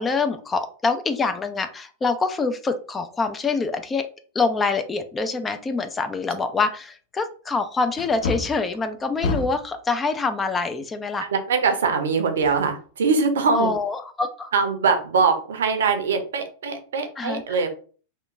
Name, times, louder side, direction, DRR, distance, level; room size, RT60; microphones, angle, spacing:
voice 1, 0.0-4.1 4.3-11.2 13.5-14.5 17.2-17.6, left 4 dB, 15° left, 9 dB, 0.3 m, -25 dB
Wood, 5.9-6.0 6.6-6.7 7.9-9.8 12.4-13.2 13.6-13.7, left 4 dB, 65° left, 0.6 m, -30 dB
voice 2, 11.2-13.7 14.5-17.7, right 5 dB, 65° right, 6 dB, 0.5 m, -22 dB
2.8 x 2.1 x 2.4 m, 0.40 s
figure-of-eight pair, 90°, 0 cm